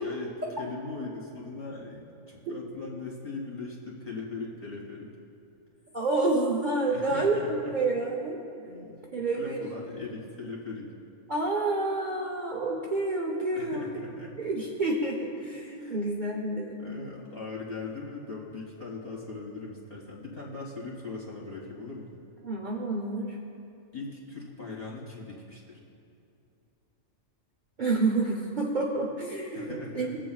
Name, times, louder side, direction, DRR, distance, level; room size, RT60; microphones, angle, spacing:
voice 1, 0.0-5.1 6.8-7.7 8.6-10.9 13.5-14.4 15.8-16.0 16.8-22.1 23.9-25.8 29.5-30.2, left 3 dB, 30° left, -6 dB, 2.2 m, -40 dB
voice 2, 5.9-8.4 9.1-9.7 11.3-14.0 14.4-17.0 22.4-23.4 27.8-30.2, right 2 dB, 40° right, -2 dB, 0.8 m, -29 dB
20.0 x 7.6 x 2.4 m, 2.6 s
omnidirectional pair, 1.4 m